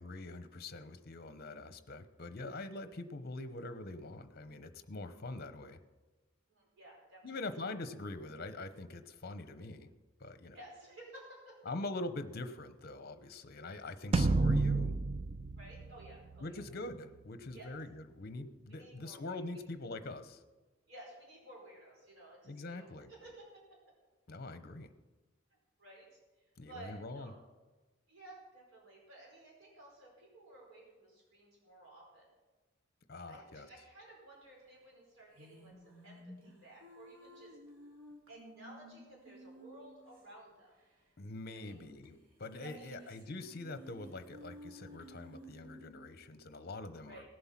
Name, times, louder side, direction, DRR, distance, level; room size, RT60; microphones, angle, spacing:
voice 1, 0.0-5.8 7.2-9.9 10.2-10.6 11.6-14.9 16.4-20.4 22.4-23.1 24.3-24.9 26.6-27.3 33.1-33.7 41.2-47.3, left 2 dB, 50° left, 11 dB, 0.9 m, -44 dB
voice 2, 6.5-7.6 10.5-11.6 15.6-16.6 17.5-17.7 18.7-19.6 20.9-23.8 25.8-26.1 26.4-27.3 28.1-32.3 33.3-37.6 38.3-40.7 41.5-41.7 42.6-43.1 47.0-47.3, right 1 dB, 70° right, -3 dB, 4.8 m, -55 dB
sound 1, 14.1-16.7, right 3 dB, 30° right, 0.3 m, -31 dB
sound 2, 35.3-40.2 40.5-40.6 40.8-40.9 41.5-42.1 42.4-46.0, equal, 85° right, 2.6 m, -54 dB
18.0 x 7.8 x 5.9 m, 1.2 s
head